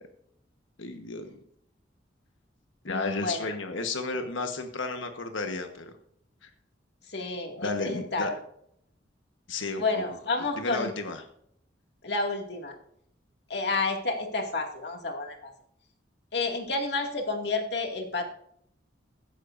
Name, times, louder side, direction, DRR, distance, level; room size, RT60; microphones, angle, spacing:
voice 1, 0.8-1.3 2.8-5.9 6.4-6.5 7.6-8.3 9.5-10.0 10.6-11.2, left 3 dB, 80° left, 5 dB, 1.3 m, -33 dB
voice 2, 2.8-3.5 7.1-8.4 9.8-10.9 12.0-12.8 13.5-15.5 16.3-18.2, left 3 dB, 55° left, 3 dB, 2.3 m, -30 dB
16.0 x 12.0 x 2.6 m, 0.69 s
head